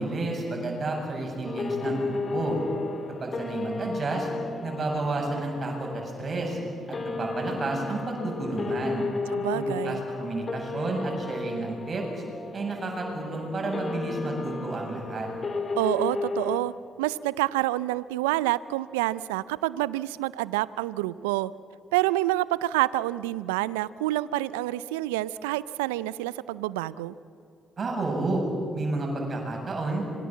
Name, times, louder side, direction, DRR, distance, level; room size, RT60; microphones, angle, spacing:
voice 1, 0.0-2.6 3.2-4.3 4.6-5.9 6.2-6.6 7.2-9.0 9.5-12.0 12.5-15.3 27.8-28.4 28.7-30.0, right 2 dB, 45° right, 1 dB, 7.6 m, -30 dB
sound 1, 1.4-16.6, left 3 dB, 40° left, 2.6 m, -34 dB
voice 2, 9.3-10.0 15.8-16.7 17.0-21.5 21.9-27.1, right 17 dB, 85° right, 19 dB, 0.5 m, -28 dB
26.5 x 22.5 x 7.4 m, 2.7 s
hypercardioid pair, 45°, 0 cm